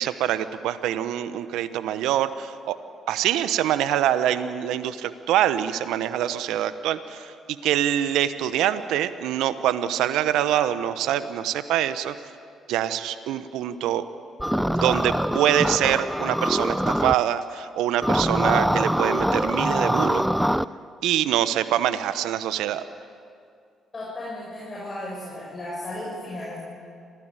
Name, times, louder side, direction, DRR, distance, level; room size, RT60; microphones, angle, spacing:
voice 1, 0.0-2.8 3.1-12.1 12.7-14.0 14.8-20.2 21.0-22.8, right 11 dB, 75° right, 13 dB, 1.0 m, -25 dB
sound 1, 14.4-17.1 18.0-20.6, equal, ahead, 0.6 m, -23 dB
voice 2, 23.9-26.6, left 1 dB, 35° left, -5 dB, 6.5 m, -35 dB
25.5 x 16.5 x 9.0 m, 2.4 s
hypercardioid pair, 50°, 0 cm